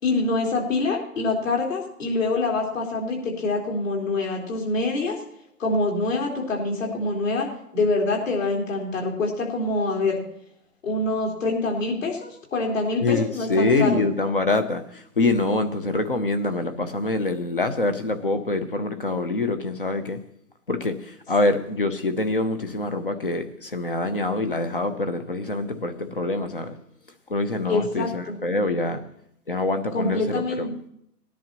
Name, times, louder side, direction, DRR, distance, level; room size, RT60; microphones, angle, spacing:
voice 1, 0.0-5.2 5.6-7.5 7.7-10.2 10.8-14.0 27.7-28.4 29.9-30.7, left 2 dB, 50° left, -1 dB, 4.1 m, -25 dB
voice 2, 13.0-14.8 15.2-20.2 20.7-26.7 27.3-29.0 29.5-30.7, left 2 dB, 35° left, 9 dB, 0.7 m, -25 dB
19.5 x 10.5 x 3.0 m, 0.72 s
hypercardioid pair, 165°, 49 cm